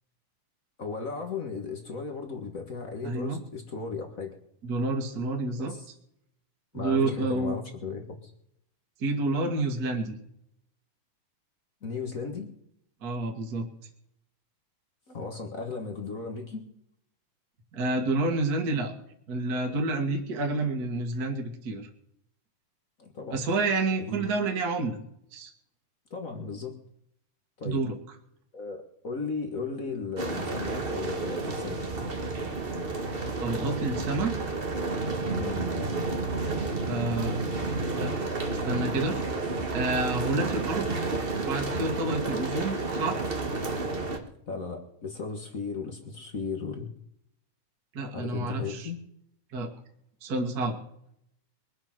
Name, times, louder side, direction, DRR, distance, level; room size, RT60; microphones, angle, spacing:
voice 1, 0.8-4.4 5.6-5.9 6.7-8.3 11.8-12.5 15.1-16.6 23.0-23.5 24.0-24.2 26.1-26.8 27.6-27.8 28.5-31.8 35.4-35.6 44.5-46.9 48.1-49.0, left 4 dB, 45° left, 4 dB, 1.0 m, -36 dB
voice 2, 3.0-3.4 4.6-5.7 6.7-7.6 9.0-10.2 13.0-13.7 17.7-18.9 19.3-21.9 23.3-25.0 25.3-25.5 27.6-28.0 33.4-34.3 36.8-37.4 37.9-38.3 38.7-39.2 39.7-41.0 41.4-43.2 47.9-48.9 49.5-49.7 50.2-50.8, right 3 dB, 35° right, 3 dB, 1.8 m, -29 dB
sound 1, 30.2-44.2, right 3 dB, 60° right, 0.5 m, -31 dB
22.5 x 8.1 x 6.0 m, 0.73 s
omnidirectional pair, 3.9 m